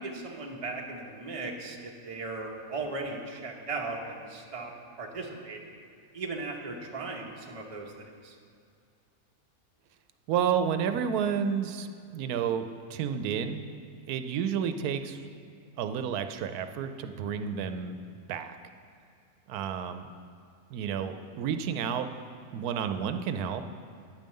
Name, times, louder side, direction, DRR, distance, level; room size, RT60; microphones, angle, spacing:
voice 1, 0.0-5.6 6.1-8.3, right 3 dB, 25° right, 0 dB, 0.9 m, -37 dB
voice 2, 10.3-12.6 12.9-18.5 19.5-20.1 20.7-22.1 22.5-23.6, right 7 dB, 90° right, 9 dB, 1.1 m, -31 dB
10.0 x 5.3 x 7.6 m, 2.3 s
omnidirectional pair, 1.5 m